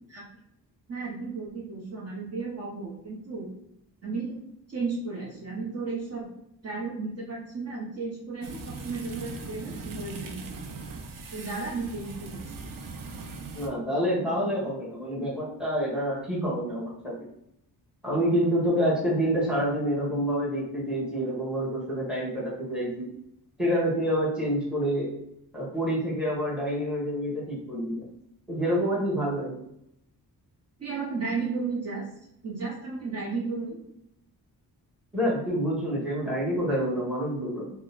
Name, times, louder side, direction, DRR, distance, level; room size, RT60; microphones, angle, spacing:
voice 1, 0.9-3.5 4.0-4.4 4.7-6.3 6.6-10.4 11.3-12.7 30.8-32.0 32.4-33.8, right 4 dB, 40° right, -5 dB, 0.9 m, -34 dB
sound 1, 8.4-13.7, right 4 dB, 60° right, 0.5 m, -40 dB
voice 2, 13.5-17.1 18.0-23.1 23.6-25.1 25.5-28.1 28.5-29.5 35.1-37.7, equal, ahead, -6 dB, 1.1 m, -27 dB
2.9 x 2.1 x 4.0 m, 0.77 s
wide cardioid pair, 145°, 38 cm